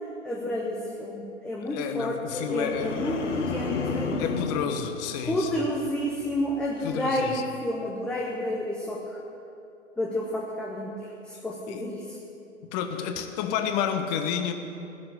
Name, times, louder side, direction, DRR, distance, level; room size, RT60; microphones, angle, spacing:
voice 1, 0.2-4.2 5.3-9.2 10.0-12.2, left 1 dB, 5° left, -1 dB, 0.4 m, -30 dB
voice 2, 1.7-2.9 4.2-5.6 6.8-7.4 11.7-11.8 12.7-14.5, left 8 dB, 35° left, 7 dB, 1.2 m, -30 dB
sound 1, 2.3-5.8 6.1-6.5, left 4 dB, 70° left, 1.5 m, -32 dB
16.5 x 5.9 x 9.7 m, 2.7 s
hypercardioid pair, 125°, 37 cm